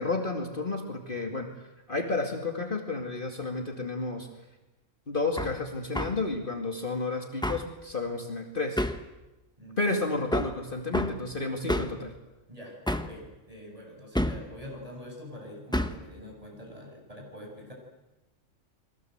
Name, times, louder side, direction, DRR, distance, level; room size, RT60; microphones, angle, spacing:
voice 1, 0.0-4.3 5.1-8.8 9.8-12.1, left 3 dB, 40° left, 3 dB, 2.5 m, -31 dB
Hammer, 5.4-5.6 5.9-6.2 7.4-7.7 8.8-9.1 10.3-10.6 10.9-11.2 11.7-12.0 12.9-13.2 14.1-14.5 15.7-16.0, left 1 dB, 5° left, 1.1 m, -29 dB
voice 2, 9.6-9.9 12.5-17.7, equal, 25° right, -1 dB, 7.5 m, -45 dB
29.5 x 22.5 x 8.0 m, 1.0 s
omnidirectional pair, 1.3 m